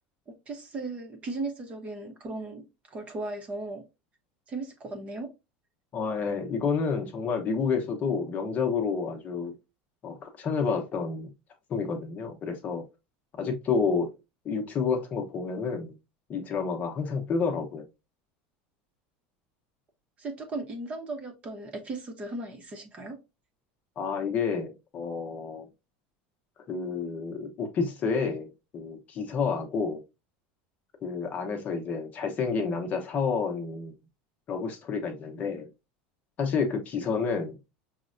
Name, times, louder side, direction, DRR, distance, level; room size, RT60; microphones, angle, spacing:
voice 1, 0.3-3.9 4.5-5.3 20.2-23.2, right 2 dB, 30° right, 0.7 m, -37 dB
voice 2, 5.9-9.5 10.0-11.3 11.7-12.9 13.4-14.1 14.4-16.0 16.3-17.9 24.0-25.7 26.7-30.0 31.0-34.0 34.5-35.7 36.4-37.7, left 5 dB, 35° left, 0.8 m, -29 dB
5.3 x 2.1 x 2.5 m
supercardioid pair, 130°, 5 cm